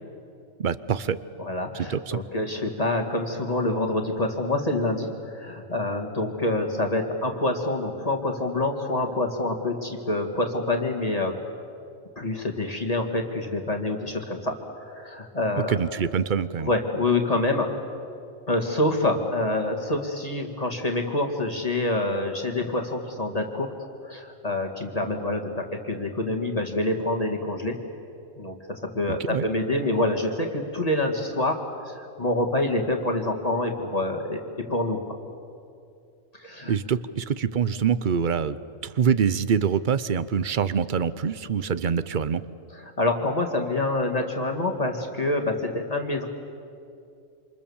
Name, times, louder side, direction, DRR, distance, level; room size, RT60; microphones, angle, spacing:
voice 1, 0.6-1.2 1.7-2.2 15.6-16.7 29.1-29.5 36.7-38.6 38.8-42.4, right 7 dB, 45° right, 15 dB, 0.8 m, -25 dB
voice 2, 1.4-11.3 12.2-14.5 14.9-15.8 16.6-17.7 18.5-23.7 24.0-27.8 28.4-34.4 34.7-35.2 36.4-36.7 43.0-46.3, left 2 dB, 30° left, 2 dB, 2.2 m, -26 dB
28.0 x 27.0 x 7.2 m, 2.5 s
omnidirectional pair, 1.4 m